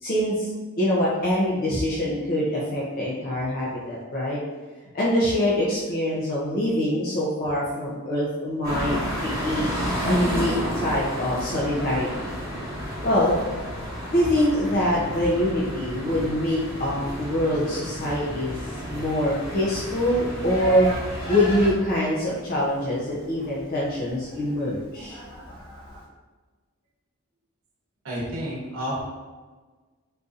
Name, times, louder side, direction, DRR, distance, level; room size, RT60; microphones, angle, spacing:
voice 1, 0.0-0.5 0.8-4.4 4.9-9.7 10.1-12.3 13.0-13.4 14.1-18.5 18.8-20.9 21.3-25.2, left 1 dB, 45° left, -6 dB, 0.5 m, -24 dB
sound 1, 8.6-21.7, equal, 15° right, 1.1 m, -32 dB
Livestock farm animals working animals, 20.0-26.1, right 3 dB, 25° left, 1.2 m, -38 dB
voice 2, 28.0-29.0, equal, 70° right, -5 dB, 0.9 m, -30 dB
3.9 x 2.6 x 2.4 m, 1.3 s
head